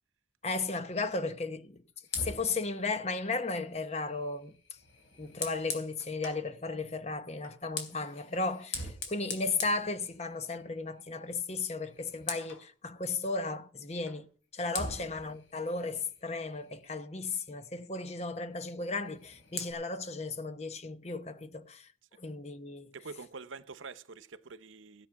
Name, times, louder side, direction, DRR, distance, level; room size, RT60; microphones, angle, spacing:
voice 1, 0.4-1.8 2.2-4.6 5.2-21.9 22.2-22.9, left 3 dB, 35° left, 0.9 m, -35 dB
Fire, 2.0-6.5 7.4-10.7 11.0-11.3 11.6-12.7 14.1-14.2 14.7-17.1 18.9-19.7, left 4 dB, 80° left, 3.7 m, -42 dB
voice 2, 14.8-15.1 22.9-25.1, right 4 dB, 90° right, 0.9 m, -46 dB
16.0 x 8.2 x 5.9 m
head